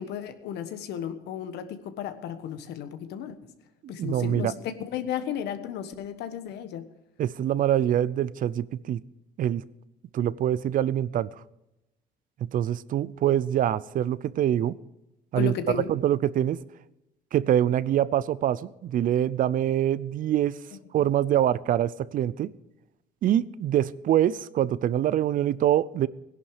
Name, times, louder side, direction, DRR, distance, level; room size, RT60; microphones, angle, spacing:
voice 1, 0.0-3.4 3.9-6.9 15.4-15.9, left 9 dB, 80° left, 10 dB, 1.3 m, -34 dB
voice 2, 3.8-4.5 7.2-9.0 9.4-9.6 10.1-11.3 12.5-14.8 15.3-15.5 15.9-16.6 17.3-20.6 20.9-22.5 23.2-26.1, right 11 dB, 55° right, 19 dB, 0.5 m, -24 dB
17.5 x 11.0 x 4.9 m, 0.91 s
cardioid pair, 110°, 17 cm